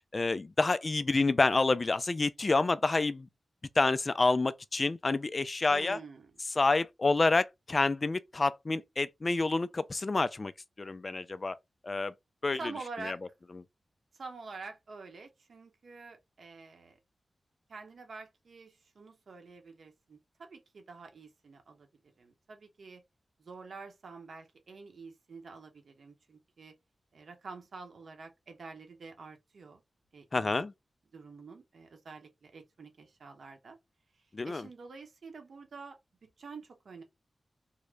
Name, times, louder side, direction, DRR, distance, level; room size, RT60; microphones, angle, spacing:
voice 1, 0.1-3.3 3.8-6.0 6.6-10.5 10.8-11.6 11.8-12.1 12.4-12.6 13.1-13.2 30.3-30.7 34.3-34.7, left 3 dB, 40° left, 0.4 m, -28 dB
voice 2, 5.7-6.4 12.5-13.2 14.1-17.0 17.7-21.9 22.2-23.0 23.4-26.7 27.1-29.8 30.1-30.6 31.1-33.8 34.2-37.0, right 4 dB, 75° right, 0.9 m, -47 dB
3.7 x 2.1 x 3.2 m
wide cardioid pair, 105°, 0 cm